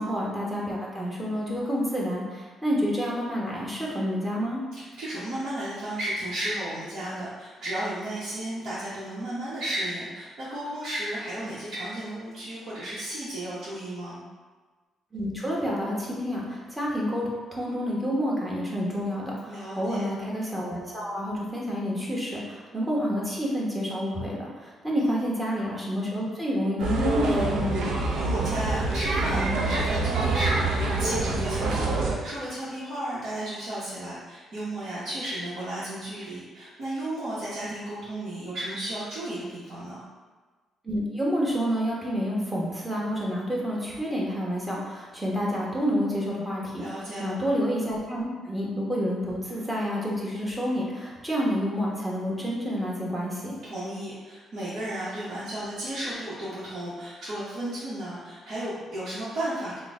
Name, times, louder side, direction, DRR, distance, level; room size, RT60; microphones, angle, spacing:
voice 1, 0.0-4.6 15.1-27.9 40.8-53.5, equal, 10° right, -5 dB, 1.0 m, -29 dB
voice 2, 4.7-14.2 19.4-20.1 25.0-25.3 28.2-40.0 46.8-47.4 53.6-59.8, right 1 dB, 60° right, -11 dB, 1.1 m, -34 dB
sound 1, 26.8-32.1, right 2 dB, 80° right, 0.5 m, -26 dB
3.8 x 2.2 x 3.6 m, 1.4 s
cardioid pair, 90°, 0 cm